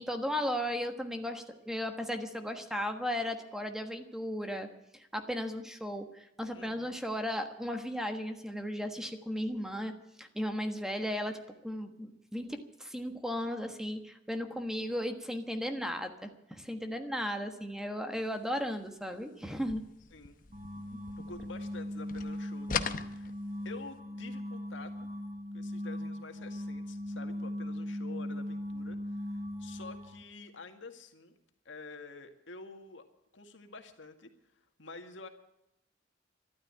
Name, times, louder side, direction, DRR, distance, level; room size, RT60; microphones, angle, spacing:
voice 1, 0.0-4.7 4.9-9.9 10.2-19.8 20.9-21.0, equal, 5° right, 6 dB, 1.3 m, -36 dB
voice 2, 6.5-7.0 20.1-20.5 21.2-23.3 23.6-25.1 25.5-31.4 31.7-33.1 33.3-35.3, left 3 dB, 80° left, 6 dB, 2.0 m, -49 dB
sound 1, 19.6-21.8 22.1-23.9, left 6 dB, 45° left, 0.9 m, -39 dB
sound 2, 20.5-30.2, left 1 dB, 35° right, 1.2 m, -39 dB
13.5 x 12.5 x 8.7 m, 0.89 s
head